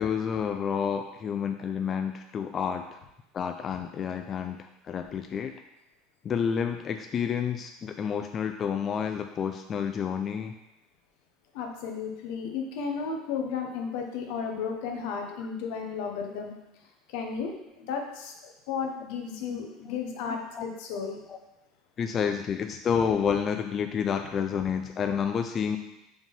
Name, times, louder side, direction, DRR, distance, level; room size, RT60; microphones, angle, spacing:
voice 1, 0.0-3.0 3.3-5.5 6.2-10.5 19.5-20.0 20.3-20.6 21.3-21.4 22.0-25.8, left 7 dB, 35° left, 6 dB, 0.3 m, -30 dB
voice 2, 11.5-16.5 17.1-17.5 17.8-18.3 18.7-21.2, left 6 dB, 75° left, 3 dB, 1.0 m, -33 dB
4.8 x 3.8 x 5.3 m, 0.92 s
supercardioid pair, 125°, 0 cm